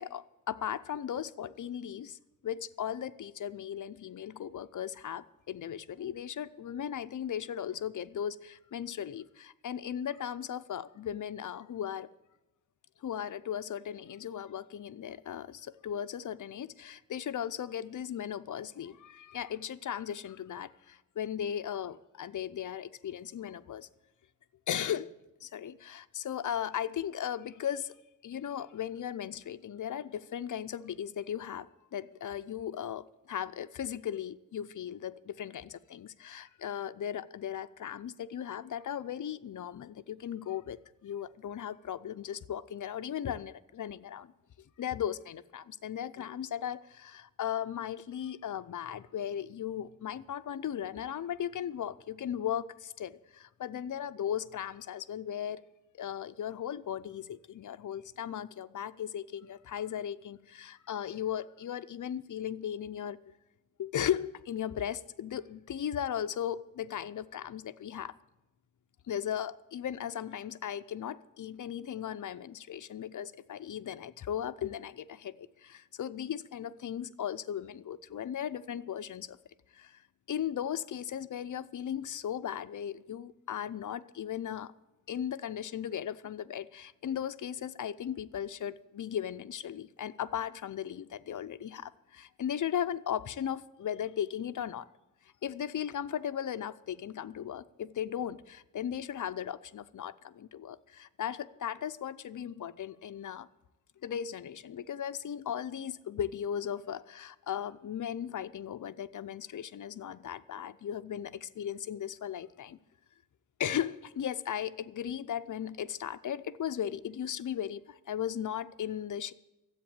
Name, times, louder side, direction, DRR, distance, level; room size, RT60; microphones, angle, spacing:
voice 1, 0.0-2.2 2.4-12.1 13.0-23.9 24.7-25.1 25.4-27.9 28.2-44.3 44.8-55.6 56.0-63.2 63.8-68.1 69.1-79.4 79.7-80.0 80.3-84.7 85.1-94.9 95.4-103.5 104.0-112.8 113.6-119.3, left 9 dB, 65° left, 0.6 m, -37 dB
13.5 x 8.1 x 8.6 m
wide cardioid pair, 130°, 33 cm